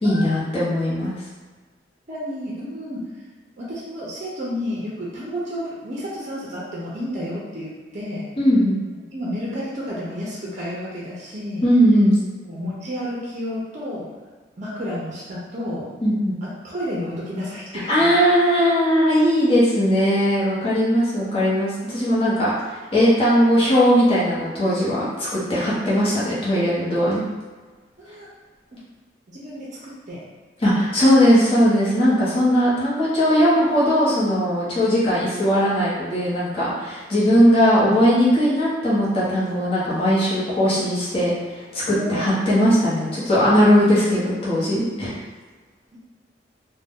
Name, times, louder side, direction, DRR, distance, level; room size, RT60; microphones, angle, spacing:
voice 1, 0.0-1.1 8.4-9.0 11.6-12.2 16.0-16.4 17.9-27.3 30.6-45.2, equal, 30° left, -8 dB, 0.8 m, -19 dB
voice 2, 2.1-3.1 3.6-8.3 9.1-11.6 12.5-14.1 14.6-15.9 16.6-18.1 28.0-28.3 29.3-30.2 41.9-42.2, equal, 40° right, -5 dB, 0.5 m, -31 dB
2.6 x 2.1 x 3.5 m, 1.4 s
head